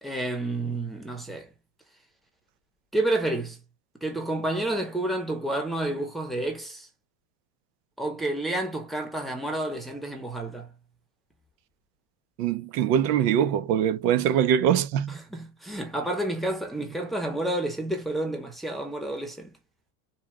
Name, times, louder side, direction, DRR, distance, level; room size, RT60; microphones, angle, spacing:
voice 1, 0.0-1.5 2.9-3.6 4.0-6.9 8.0-10.7 15.1-19.5, right 1 dB, ahead, 0.8 m, -30 dB
voice 2, 12.4-15.2, right 9 dB, 80° right, 0.9 m, -23 dB
4.4 x 2.4 x 4.7 m
supercardioid pair, 155°, 47 cm